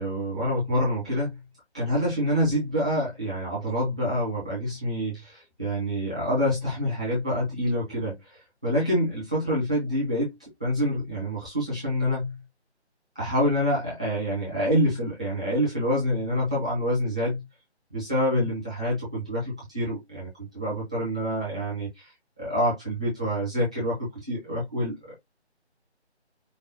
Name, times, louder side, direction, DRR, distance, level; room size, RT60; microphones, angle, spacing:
voice 1, 0.0-1.4 1.7-10.3 10.6-12.4 13.1-17.4 17.9-25.0, equal, 5° right, 0.8 m, -27 dB
5.2 x 2.5 x 2.8 m
figure-of-eight pair, 165°, 34 cm